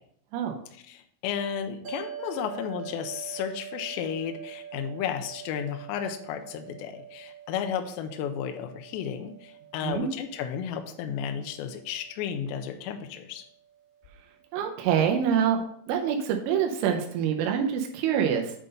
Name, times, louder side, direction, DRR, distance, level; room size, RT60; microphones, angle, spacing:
voice 1, 0.7-13.4, left 8 dB, 85° left, 4 dB, 2.6 m, -33 dB
sound 1, 1.8-14.3, right 9 dB, 55° right, 1.0 m, -45 dB
voice 2, 14.5-15.6 15.9-18.5, right 8 dB, 85° right, 3 dB, 3.2 m, -25 dB
8.1 x 3.8 x 5.3 m, 0.66 s
omnidirectional pair, 5.5 m